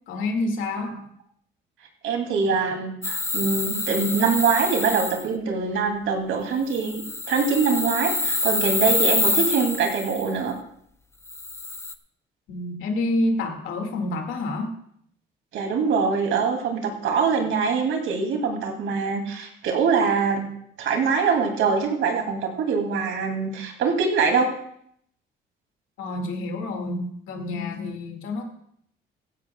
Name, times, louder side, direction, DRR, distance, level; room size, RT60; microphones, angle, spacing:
voice 1, 0.1-1.0 12.5-14.7 26.0-28.5, left 2 dB, 85° left, 4 dB, 2.2 m, -28 dB
voice 2, 2.0-7.0 7.3-10.5 15.5-20.5 20.8-24.5, right 5 dB, 85° right, 3 dB, 2.7 m, -23 dB
sound 1, 3.0-5.2 6.7-10.2 11.3-11.9, left 2 dB, 15° left, 0.7 m, -26 dB
16.5 x 15.0 x 2.3 m, 0.68 s
cardioid pair, 90°, 20 cm